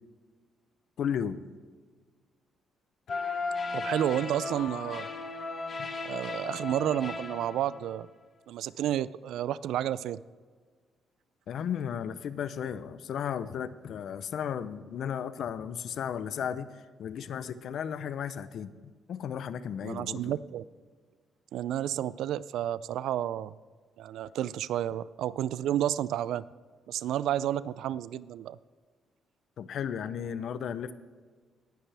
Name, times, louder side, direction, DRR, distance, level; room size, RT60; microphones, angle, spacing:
voice 1, 1.0-1.4 11.5-16.7 17.0-18.7 19.1-20.4 29.6-30.9, left 8 dB, 65° left, 14 dB, 0.6 m, -34 dB
sound 1, 3.1-7.9, left 3 dB, 45° left, 2.0 m, -36 dB
voice 2, 3.7-5.1 6.0-8.1 8.5-10.2 19.8-20.6 21.5-23.5 24.0-26.4 26.9-28.6, right 11 dB, 80° right, 18 dB, 0.3 m, -31 dB
18.5 x 10.0 x 3.4 m, 1.5 s
cardioid pair, 90°, 0 cm